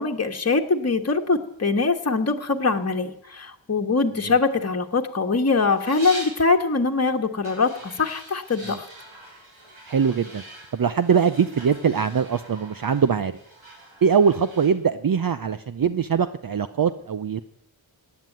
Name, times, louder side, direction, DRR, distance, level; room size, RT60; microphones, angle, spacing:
voice 1, 0.0-8.9, left 4 dB, 30° left, 3 dB, 1.4 m, -23 dB
sound 1, 5.7-6.4 7.4-14.7, right 1 dB, 85° right, 5.7 m, -43 dB
voice 2, 9.9-10.4 10.7-13.4 14.0-17.4, right 6 dB, 45° right, 12 dB, 0.7 m, -22 dB
16.0 x 9.6 x 9.2 m, 0.82 s
wide cardioid pair, 65°, 47 cm